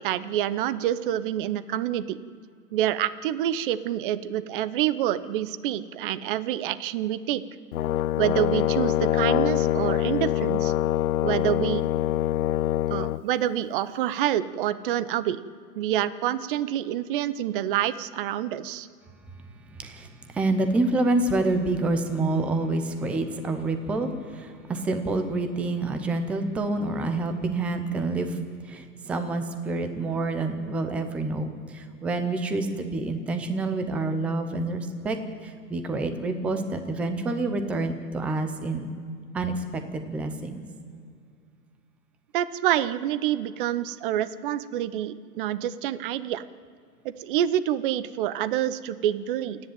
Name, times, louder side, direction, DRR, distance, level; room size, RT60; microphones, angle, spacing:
voice 1, 0.0-2.2 2.7-7.4 8.2-10.7 11.2-11.9 12.9-15.4 15.7-18.9 42.3-46.4 47.0-49.6, right 11 dB, 30° right, 15 dB, 0.9 m, -27 dB
Brass instrument, 7.7-13.2, left 13 dB, 60° left, 0.6 m, -24 dB
voice 2, 19.7-28.4 28.6-35.2 35.4-38.9 39.3-40.6, right 2 dB, 5° right, 8 dB, 0.5 m, -27 dB
28.5 x 10.5 x 9.2 m, 2.2 s
hypercardioid pair, 130°, 49 cm